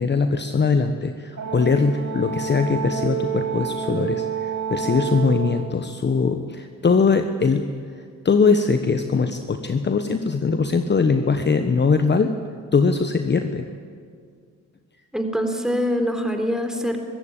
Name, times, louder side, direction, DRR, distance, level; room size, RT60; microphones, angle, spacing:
voice 1, 0.0-7.6 8.2-12.4 12.7-13.7, left 4 dB, 30° left, 8 dB, 1.1 m, -21 dB
Brass instrument, 1.4-5.6, right 7 dB, 50° right, 4.8 m, -28 dB
voice 2, 15.1-17.0, equal, ahead, 5 dB, 3.4 m, -24 dB
23.0 x 14.5 x 8.7 m, 2.1 s
supercardioid pair, 60°, 36 cm